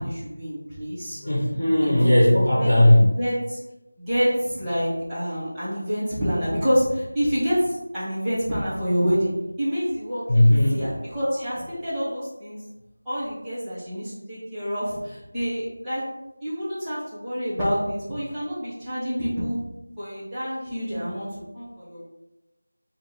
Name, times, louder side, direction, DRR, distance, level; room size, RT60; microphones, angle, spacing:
voice 1, 0.0-1.2 1.8-2.7 3.2-3.6 4.0-9.3 9.6-12.6 13.1-16.0 16.4-19.6 20.0-21.3 21.5-22.0, equal, 5° right, -15 dB, 0.6 m, -27 dB
voice 2, 1.1-3.1 10.3-10.8, left 1 dB, 40° left, -6 dB, 1.0 m, -17 dB
5.2 x 2.6 x 3.1 m, 0.99 s
figure-of-eight pair, 180°, 0 cm